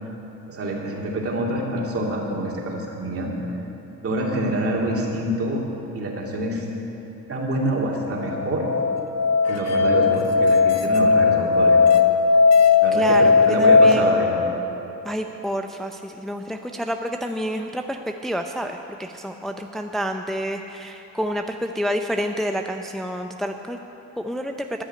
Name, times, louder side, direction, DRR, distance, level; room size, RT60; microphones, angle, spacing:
voice 1, 0.5-3.3 4.0-5.6 5.9-6.6 7.3-8.7 9.5-11.8 12.8-14.3, right 1 dB, 50° right, -2 dB, 2.6 m, -26 dB
Musical instrument, 8.2-13.9, left 4 dB, 60° left, 0.9 m, -17 dB
voice 2, 12.9-14.3 15.0-23.8 24.2-24.6, equal, ahead, 5 dB, 0.5 m, -29 dB
13.5 x 6.3 x 9.7 m, 3.0 s
cardioid pair, 90°, 30 cm